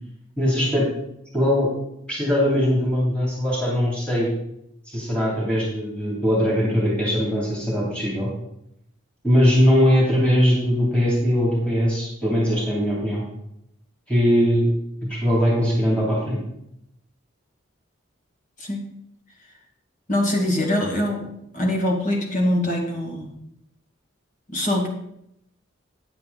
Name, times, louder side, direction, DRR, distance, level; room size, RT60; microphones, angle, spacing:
voice 1, 0.4-0.8 1.3-1.7 2.1-4.3 4.9-8.3 9.2-13.2 14.1-14.7 15.1-16.4, equal, 5° left, -6 dB, 2.9 m, -20 dB
voice 2, 20.1-21.3 21.5-23.3 24.5-24.9, left 1 dB, 40° left, 0 dB, 2.1 m, -23 dB
9.5 x 8.5 x 4.0 m, 0.78 s
head